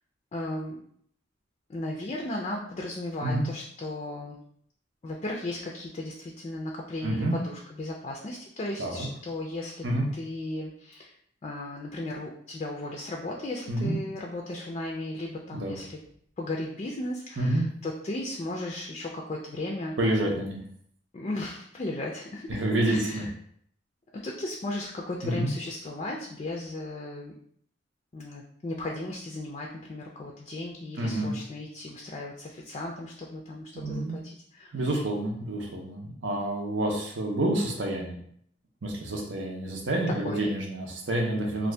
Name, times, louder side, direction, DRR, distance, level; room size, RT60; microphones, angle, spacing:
voice 1, 0.3-0.8 1.7-4.4 5.0-9.8 10.1-11.1 11.4-16.0 16.4-19.9 21.1-23.3 24.2-27.3 28.1-34.9 40.2-40.5, left 2 dB, 35° left, -1 dB, 0.4 m, -36 dB
voice 2, 7.0-7.4 8.8-9.1 9.8-10.1 13.7-14.0 15.5-15.8 17.4-17.6 20.0-20.6 22.5-23.3 25.2-25.5 31.0-31.3 33.7-34.2 34.7-38.2 38.8-41.7, right 1 dB, 85° right, 0 dB, 0.7 m, -28 dB
2.7 x 2.5 x 3.3 m, 0.65 s
head